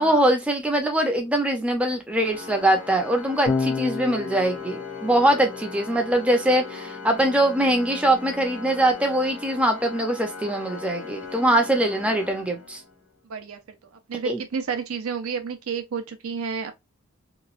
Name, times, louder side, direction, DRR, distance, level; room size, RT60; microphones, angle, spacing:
voice 1, 0.0-12.8 14.3-14.4, right 1 dB, 5° right, 0.5 m, -22 dB
Organ, 2.1-13.1, left 4 dB, 85° left, 1.3 m, -39 dB
Electric guitar / Bass guitar, 3.5-9.9, left 4 dB, 60° left, 0.7 m, -34 dB
voice 2, 13.2-13.8 14.1-16.7, right 6 dB, 85° right, 0.5 m, -31 dB
3.0 x 2.2 x 2.4 m
head